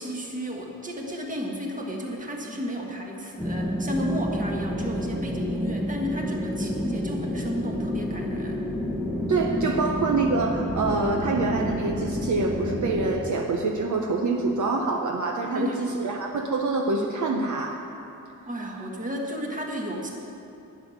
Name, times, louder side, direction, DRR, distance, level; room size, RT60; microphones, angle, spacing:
voice 1, 0.0-8.7 15.5-15.9 18.5-20.1, equal, 25° right, 0 dB, 1.5 m, -33 dB
sound 1, 3.4-13.1, equal, 5° right, 0.9 m, -29 dB
voice 2, 9.3-17.7, right 3 dB, 60° right, 2 dB, 0.8 m, -26 dB
12.0 x 6.3 x 9.5 m, 2.8 s
wide cardioid pair, 175°, 34 cm